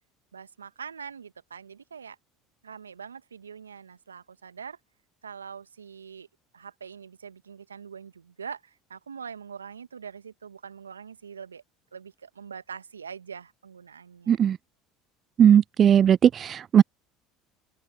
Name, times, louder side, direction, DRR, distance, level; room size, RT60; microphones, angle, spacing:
voice 1, 0.3-2.2 2.6-4.8 5.2-6.3 6.5-11.6 11.9-14.4, right 6 dB, 85° right, 1.9 m, -43 dB
voice 2, 14.3-14.6 15.4-16.8, right 9 dB, 40° right, 0.3 m, -18 dB
open air
figure-of-eight pair, 65°, 0 cm